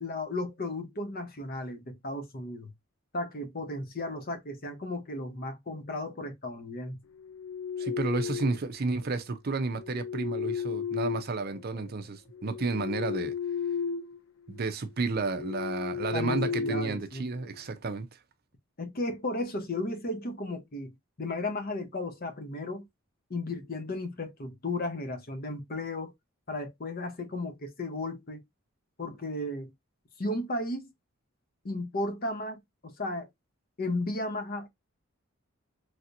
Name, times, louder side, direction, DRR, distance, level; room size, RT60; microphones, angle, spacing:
voice 1, 0.0-2.7 3.1-7.0 16.1-17.2 18.8-20.9 21.2-22.9 23.3-26.1 26.5-28.4 29.0-29.7 30.2-30.9 31.6-33.3 33.8-34.7, left 2 dB, 45° left, 0.8 m, -34 dB
sound 1, 7.2-8.7 9.7-11.8 12.3-14.2 14.5-14.7 15.2-17.6, left 7 dB, 70° left, 0.4 m, -34 dB
voice 2, 7.8-13.3 14.5-18.1, right 3 dB, 45° right, 0.5 m, -31 dB
3.2 x 2.8 x 2.5 m
head